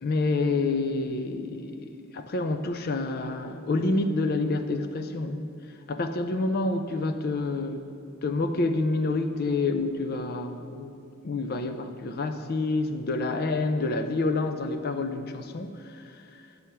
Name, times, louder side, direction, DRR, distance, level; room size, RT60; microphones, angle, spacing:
voice 1, 0.0-5.5 5.9-7.9 8.2-10.9 11.2-16.1, left 3 dB, 50° left, 8 dB, 0.4 m, -28 dB
8.5 x 6.9 x 4.4 m, 2.5 s
head